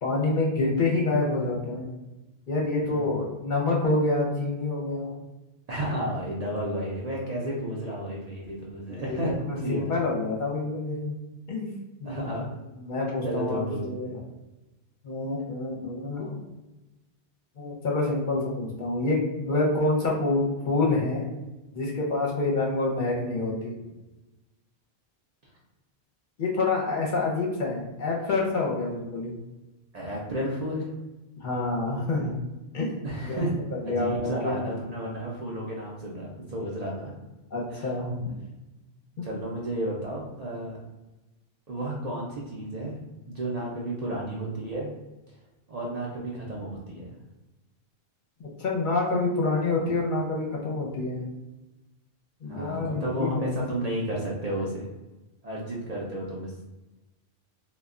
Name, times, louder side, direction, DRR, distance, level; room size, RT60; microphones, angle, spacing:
voice 1, 0.0-1.9 2.5-5.1 8.9-9.2 9.5-11.2 11.5-11.7 12.0-12.3 12.8-14.2 15.0-16.5 17.6-21.3 21.7-23.8 26.4-29.3 31.4-32.3 32.7-32.9 33.3-33.4 33.8-34.7 37.5-38.4 39.2-39.3 48.6-51.2 52.4-53.5, left 2 dB, 55° left, -2 dB, 0.7 m, -27 dB
voice 2, 5.7-9.9 12.0-12.5 13.2-14.0 29.9-30.9 33.0-33.5 33.8-37.1 37.7-37.9 39.2-40.8 41.7-43.0 43.3-44.9 45.7-47.1 52.5-54.9 55.4-56.6, right 1 dB, 50° right, -4 dB, 0.5 m, -32 dB
2.2 x 2.1 x 3.5 m, 1.1 s
omnidirectional pair, 1.1 m